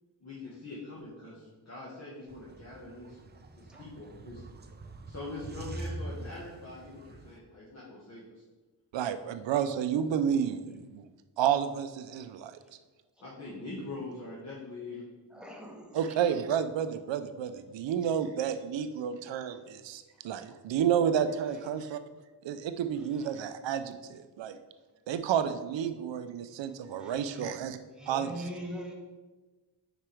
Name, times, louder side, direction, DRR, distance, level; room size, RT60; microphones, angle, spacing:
voice 1, 0.2-3.2 3.5-4.4 5.1-8.2 13.2-15.0, left 2 dB, 35° left, -6 dB, 1.5 m, -43 dB
sound 1, 2.3-7.4, right 1 dB, 25° right, 0.5 m, -44 dB
voice 2, 8.9-11.0 11.4-12.6 15.9-22.0 22.4-24.6 25.1-27.8 28.1-28.5, right 8 dB, 85° right, 10 dB, 0.6 m, -31 dB
voice 3, 15.3-16.2 21.5-21.8 23.1-23.3 27.0-27.5 28.0-28.9, right 1 dB, ahead, 0 dB, 1.2 m, -43 dB
5.0 x 4.8 x 4.5 m, 1.2 s
wide cardioid pair, 100°, 43 cm